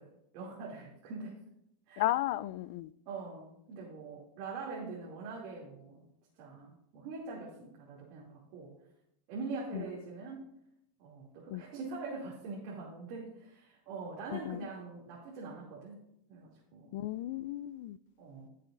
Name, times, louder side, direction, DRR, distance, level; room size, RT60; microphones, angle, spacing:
voice 1, 0.0-1.4 1.9-2.0 3.1-6.1 6.4-8.7 9.3-10.5 11.0-16.0 16.3-17.0 18.2-18.5, right 4 dB, 55° right, 2.5 m, -43 dB
voice 2, 2.0-2.9 9.7-9.8 11.5-11.6 14.3-14.7 16.9-18.0, left 15 dB, 65° left, 0.3 m, -34 dB
18.5 x 6.7 x 2.5 m
supercardioid pair, 120°, 0 cm